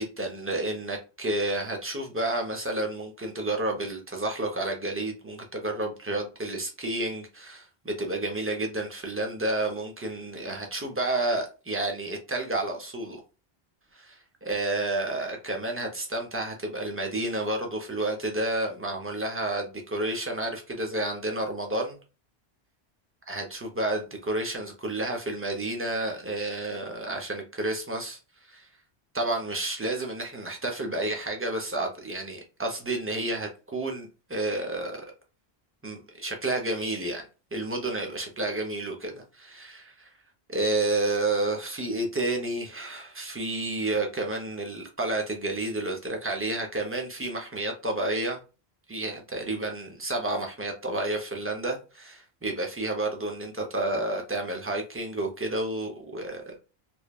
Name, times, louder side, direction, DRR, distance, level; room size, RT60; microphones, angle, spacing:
voice 1, 0.0-13.2 13.9-22.0 23.3-28.2 28.5-28.7 29.1-35.1 35.8-40.1 40.5-48.4 48.9-56.6, right 2 dB, 20° right, 0.4 m, -30 dB
3.1 x 2.1 x 2.3 m
omnidirectional pair, 1.1 m